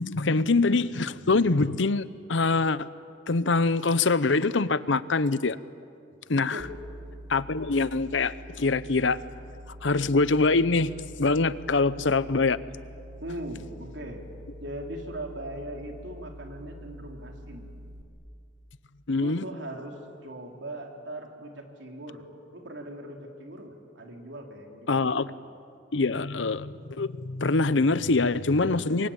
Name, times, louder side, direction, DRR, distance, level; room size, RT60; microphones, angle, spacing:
voice 1, 0.0-2.9 3.3-5.6 6.3-6.6 7.3-9.2 9.8-10.9 11.2-12.6 19.1-19.4 24.9-25.3 25.9-29.1, left 3 dB, 80° left, 16 dB, 0.8 m, -24 dB
voice 2, 6.4-6.7 13.2-14.2 14.6-17.7 19.2-22.2 22.5-24.9 25.3-25.4 28.7-29.1, right 1 dB, 75° right, 2 dB, 3.8 m, -40 dB
sound 1, 6.6-18.0, equal, 55° right, 2.2 m, -45 dB
28.5 x 23.5 x 8.9 m, 2.3 s
head